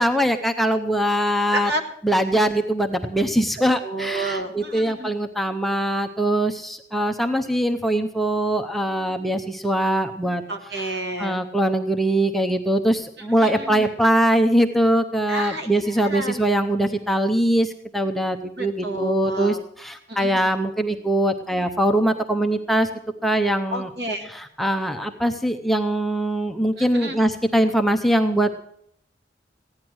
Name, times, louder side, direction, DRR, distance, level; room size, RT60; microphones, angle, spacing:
voice 1, 0.0-1.7 2.0-10.4 11.2-22.9 23.2-23.9 24.3-28.6, right 1 dB, ahead, 5 dB, 0.6 m, -22 dB
voice 2, 1.5-1.8 3.8-5.1 10.5-11.4 13.2-13.9 15.3-16.4 18.6-19.6 20.1-20.4 23.7-24.3 26.8-27.2, right 2 dB, 65° right, 5 dB, 1.7 m, -30 dB
15.5 x 10.5 x 6.2 m, 0.69 s
head